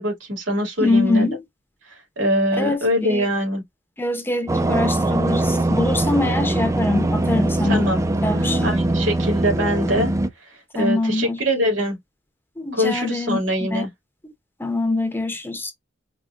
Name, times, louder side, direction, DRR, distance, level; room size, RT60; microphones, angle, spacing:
voice 1, 0.0-1.3 1.9-3.6 7.6-8.0 8.4-10.1 10.8-12.0 12.7-13.9, equal, 75° right, 2.4 m, -23 dB
voice 2, 0.8-1.4 2.5-3.3 4.0-7.9 8.2-8.7 10.7-11.4 12.6-13.4 13.7-13.8 14.6-15.7, left 2 dB, 10° left, 0.7 m, -23 dB
sound 1, 4.5-10.3, right 2 dB, 15° right, 0.4 m, -22 dB
4.9 x 2.6 x 2.4 m
head